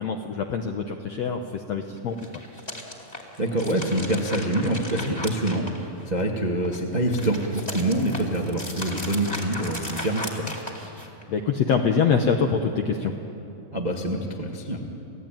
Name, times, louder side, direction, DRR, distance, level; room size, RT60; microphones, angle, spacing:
voice 1, 0.0-2.2 11.3-13.1, left 6 dB, 80° left, 4 dB, 1.5 m, -24 dB
sound 1, 2.1-6.2 6.6-11.2, left 1 dB, 10° left, 2.1 m, -36 dB
voice 2, 3.4-5.6 6.0-10.5 13.7-14.8, right 1 dB, 80° right, 0 dB, 0.4 m, -25 dB
28.0 x 17.0 x 9.0 m, 2.8 s
omnidirectional pair, 4.4 m